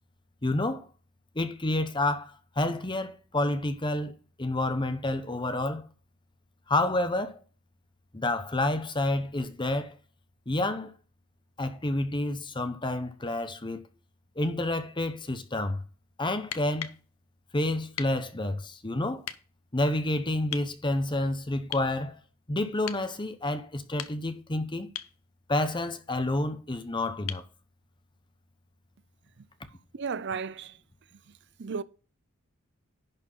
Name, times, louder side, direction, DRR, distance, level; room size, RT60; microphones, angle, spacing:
voice 1, 0.4-0.9 1.3-5.9 6.7-7.4 8.1-9.9 10.5-10.9 11.6-13.8 14.4-15.8 16.2-16.9 17.5-19.3 19.7-22.2 22.5-24.9 25.5-27.4, left 2 dB, 20° left, 1.0 m, -29 dB
sound 1, 16.4-17.0 18.0-18.2 19.2-19.4 20.5-20.7 21.7-21.9 22.9-23.1 23.8-24.4 24.9-25.2 27.3-27.5 29.4-29.5, left 10 dB, 70° left, 0.8 m, -38 dB
voice 2, 29.9-30.8 31.6-31.8, right 5 dB, 55° right, 0.5 m, -33 dB
11.0 x 4.5 x 5.6 m
head